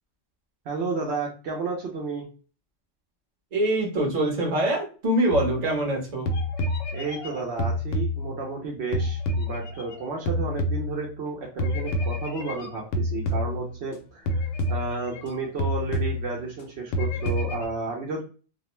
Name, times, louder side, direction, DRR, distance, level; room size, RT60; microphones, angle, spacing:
voice 1, 0.7-2.2 6.9-14.4 14.7-18.2, right 4 dB, 65° right, -1 dB, 0.8 m, -32 dB
voice 2, 3.5-6.3, right 1 dB, 40° right, 1 dB, 0.8 m, -24 dB
sound 1, 5.3-5.9 6.3-8.6 8.9-11.3 11.6-13.9 14.3-15.3 15.6-16.6 16.9-17.7, left 1 dB, 90° left, 0.9 m, -28 dB
2.5 x 2.1 x 2.9 m, 0.36 s
omnidirectional pair, 1.2 m